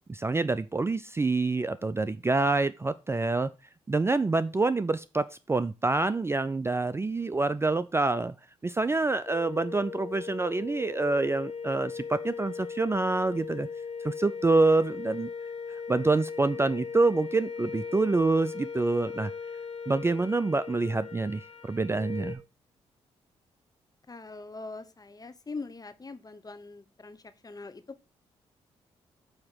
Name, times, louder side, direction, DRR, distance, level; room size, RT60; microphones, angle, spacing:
voice 1, 0.1-3.5 3.9-8.3 8.6-13.7 14.0-15.3 15.9-19.3 19.9-22.4, right 3 dB, 20° right, 14 dB, 0.4 m, -26 dB
sound 1, 9.3-22.4, left 5 dB, 50° left, 1.6 m, -38 dB
voice 2, 24.1-27.8, left 3 dB, 30° left, 11 dB, 0.9 m, -42 dB
8.6 x 2.9 x 6.2 m, 0.30 s
hypercardioid pair, 45°, 13 cm